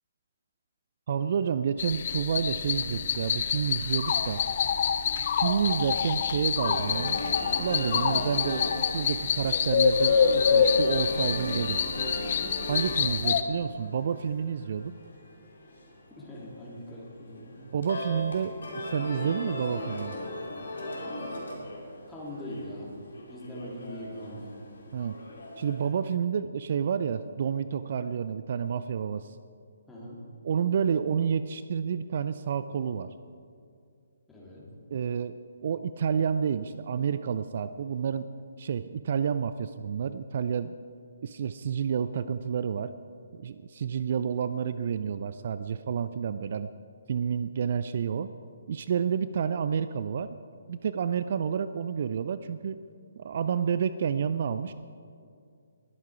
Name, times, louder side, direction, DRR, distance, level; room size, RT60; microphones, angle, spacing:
voice 1, 1.1-4.4 5.4-7.2 7.6-11.8 12.7-14.9 17.7-20.1 24.9-25.2 25.6-29.4 30.4-33.1 34.9-35.4 35.6-38.3 38.6-40.7 41.2-42.9 43.3-46.7 47.1-48.3 48.7-50.4 50.7-52.8 53.2-54.7, right 7 dB, 45° right, 13 dB, 0.4 m, -29 dB
sound 1, 1.8-13.4, left 7 dB, 45° left, 0.7 m, -26 dB
sound 2, 6.6-25.9, left 1 dB, 65° left, 3.2 m, -38 dB
voice 2, 16.1-17.5 22.1-22.9 23.3-24.6 29.9-30.2 34.3-34.6, equal, 5° left, -6 dB, 3.0 m, -41 dB
20.5 x 8.3 x 4.8 m, 2.3 s
figure-of-eight pair, 140°, 0 cm